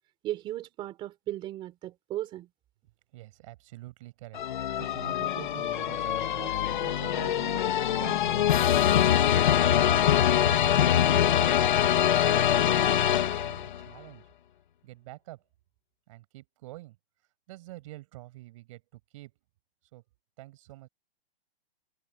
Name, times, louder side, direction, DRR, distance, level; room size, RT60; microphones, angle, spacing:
voice 1, 0.2-2.5, right 14 dB, 15° right, 3.7 m, -36 dB
voice 2, 3.1-4.4 4.8-9.4 9.7-10.2 10.8-11.6 11.9-14.2 14.8-15.4 16.1-17.0 17.5-19.3 19.9-20.0 20.4-20.9, right 18 dB, 30° right, 7.2 m, -47 dB
sound 1, 4.3-13.8, left 10 dB, 50° left, 2.0 m, -24 dB
hypercardioid pair, 170°, 30 cm